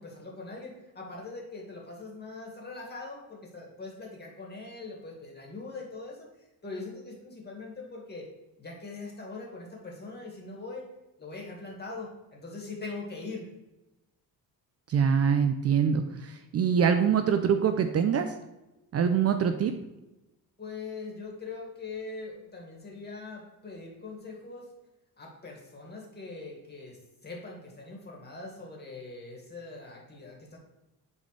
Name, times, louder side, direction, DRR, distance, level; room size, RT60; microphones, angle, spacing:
voice 1, 0.0-6.3 6.6-8.3 8.6-10.9 11.2-13.5 20.6-24.7 25.2-30.6, left 3 dB, 25° left, -2 dB, 2.3 m, -42 dB
voice 2, 14.9-18.3 18.9-19.7, right 7 dB, 40° right, 7 dB, 0.5 m, -24 dB
10.5 x 4.0 x 3.3 m, 0.99 s
cardioid pair, 125°, 37 cm